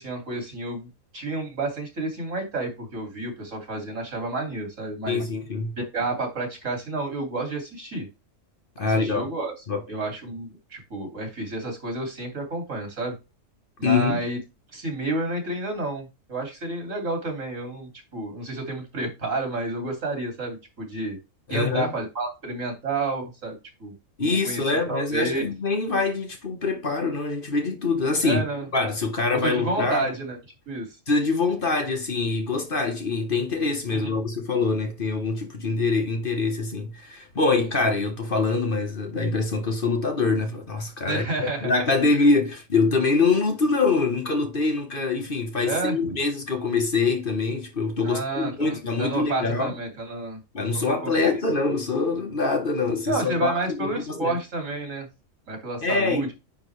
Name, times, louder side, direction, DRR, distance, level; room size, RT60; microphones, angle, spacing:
voice 1, 0.0-5.3 5.8-8.1 8.8-9.5 9.9-13.1 13.8-14.4 14.7-21.2 21.5-23.9 24.2-25.4 28.2-28.7 29.3-30.4 30.7-30.9 33.9-34.2 37.6-37.7 41.0-41.7 45.6-46.2 48.0-50.4 50.7-51.3 53.1-55.1 55.5-56.3, right 2 dB, 75° right, 3.1 m, -30 dB
voice 2, 5.1-5.8 8.8-9.3 9.7-9.8 13.8-14.2 21.5-21.9 24.2-28.4 28.7-30.1 31.1-49.7 50.5-54.4 55.8-56.3, left 3 dB, 45° left, 1.4 m, -24 dB
9.5 x 4.5 x 3.3 m
omnidirectional pair, 1.4 m